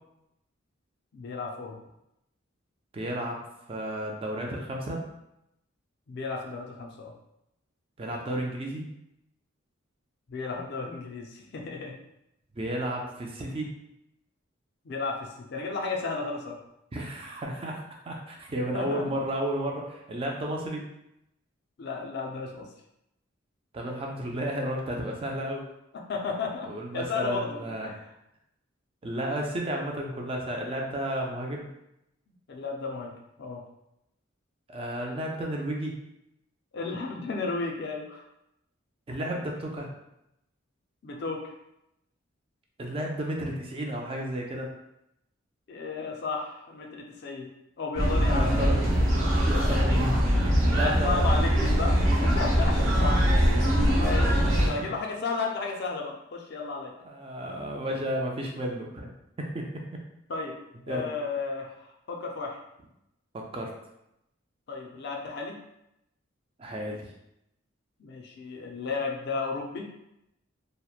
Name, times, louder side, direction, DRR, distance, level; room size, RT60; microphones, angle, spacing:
voice 1, 1.1-1.8 6.1-7.1 10.3-12.0 14.8-16.6 18.7-19.1 21.8-22.7 26.1-28.1 32.5-33.6 36.7-38.3 41.0-41.5 45.7-47.5 47.8-48.8 50.8-53.3 54.0-56.9 60.3-60.6 60.9-62.6 64.7-65.6 68.0-69.9, left 4 dB, 55° left, 1 dB, 0.4 m, -33 dB
voice 2, 2.9-3.4 3.7-5.0 8.0-8.9 12.5-13.7 16.9-20.9 23.7-25.7 26.7-27.9 29.0-31.7 34.7-36.0 39.1-39.9 42.8-44.7 48.3-48.8 49.5-51.3 54.7-54.9 57.0-59.1 59.4-60.0 60.9-61.1 63.3-63.7 66.6-67.1, right 1 dB, 25° right, 0 dB, 0.3 m, -32 dB
sound 1, 47.9-54.7, equal, 75° right, 1.0 m, -22 dB
2.8 x 2.0 x 2.3 m, 0.84 s
head